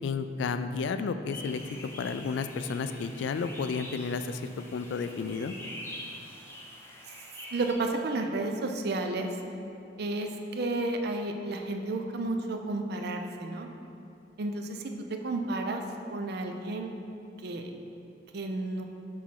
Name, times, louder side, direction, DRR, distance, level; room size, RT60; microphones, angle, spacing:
voice 1, 0.0-5.5, left 5 dB, 80° left, 10 dB, 0.3 m, -32 dB
sound 1, 1.3-7.7, left 1 dB, 15° left, 0.7 m, -45 dB
voice 2, 7.5-9.4 10.0-13.7 14.4-15.8 16.1-16.9 17.4-17.7 18.3-18.8, right 2 dB, 60° right, 4 dB, 0.5 m, -32 dB
6.1 x 4.1 x 4.6 m, 2.7 s
head